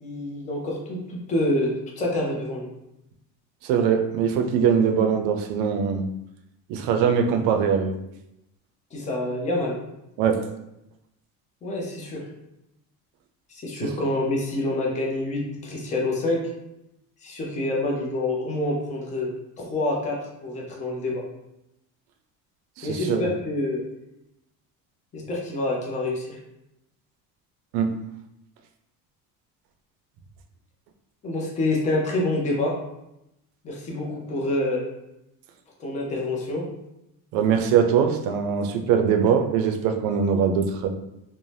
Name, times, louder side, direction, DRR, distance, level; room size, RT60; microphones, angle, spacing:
voice 1, 0.0-2.7 8.9-9.8 11.6-12.2 13.5-16.4 17.2-19.3 19.6-21.2 22.8-23.8 25.1-26.4 31.2-32.7 33.6-34.8 35.8-36.6, left 2 dB, 20° left, -2 dB, 0.5 m, -27 dB
voice 2, 3.6-6.1 6.7-8.0 10.2-10.5 13.8-13.9 22.8-23.3 27.7-28.0 37.3-40.9, right 7 dB, 75° right, 6 dB, 0.5 m, -22 dB
2.6 x 2.1 x 3.2 m, 0.87 s
cardioid pair, 160°, 37 cm